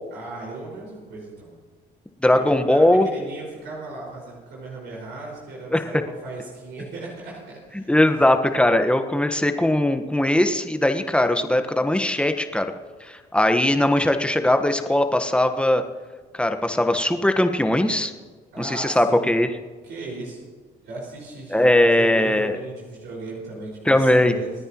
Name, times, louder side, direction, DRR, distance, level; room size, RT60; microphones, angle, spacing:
voice 1, 0.1-1.5 2.3-7.9 18.5-19.3 19.8-20.4 20.8-24.5, right 2 dB, 75° right, -5 dB, 5.4 m, -36 dB
voice 2, 2.2-3.1 5.7-5.9 7.7-12.7 13.1-15.8 16.3-18.1 18.6-19.6 21.5-22.6 23.9-24.3, left 1 dB, 5° left, 7 dB, 1.3 m, -20 dB
27.0 x 10.0 x 3.0 m, 1.4 s
supercardioid pair, 70°, 18 cm